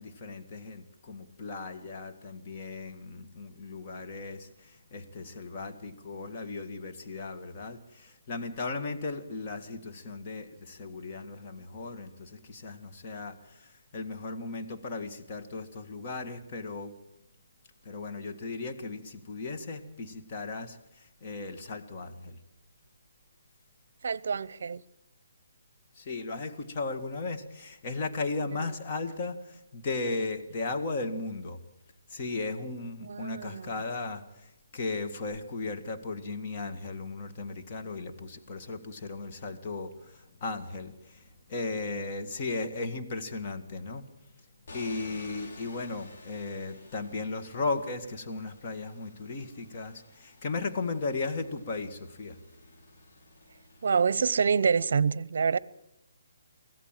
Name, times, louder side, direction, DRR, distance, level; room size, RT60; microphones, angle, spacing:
voice 1, 0.0-16.9 17.8-22.4 25.9-31.6 32.1-44.1 44.7-52.4, left 3 dB, 35° left, 1.9 m, -36 dB
voice 2, 24.0-24.8 33.0-33.7 53.8-55.6, right 6 dB, 60° right, 0.7 m, -26 dB
sound 1, 44.7-54.2, left 2 dB, 50° left, 4.1 m, -52 dB
24.0 x 16.0 x 7.6 m
hypercardioid pair, 160°, 0 cm